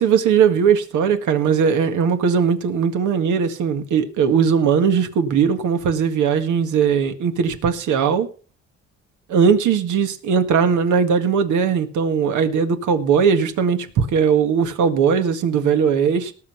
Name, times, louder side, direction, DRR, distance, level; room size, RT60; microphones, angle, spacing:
voice 1, 0.0-8.3 9.3-16.3, right 6 dB, 80° right, 1.8 m, -19 dB
18.5 x 6.2 x 5.8 m
cardioid pair, 90°, 30 cm